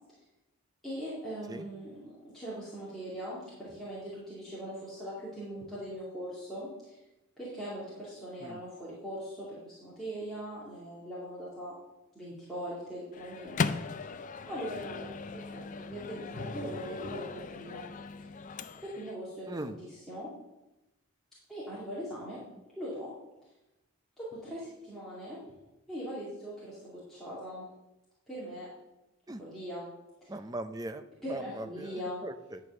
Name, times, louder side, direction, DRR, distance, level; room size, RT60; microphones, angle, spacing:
voice 1, 0.8-7.0 7.4-11.7 12.1-13.7 14.0-14.1 14.5-17.3 17.5-17.9 18.8-20.3 21.5-22.4 22.8-23.1 24.2-25.4 25.9-27.7 28.3-28.7 29.4-29.9 30.2-30.3 31.2-32.2, equal, ahead, -10 dB, 2.4 m, -41 dB
Microwave oven, 13.1-19.1, left 5 dB, 35° left, 0.4 m, -38 dB
voice 2, 30.3-31.0 31.3-32.6, right 1 dB, 15° right, 9 dB, 0.5 m, -39 dB
10.5 x 4.8 x 6.9 m, 0.97 s
head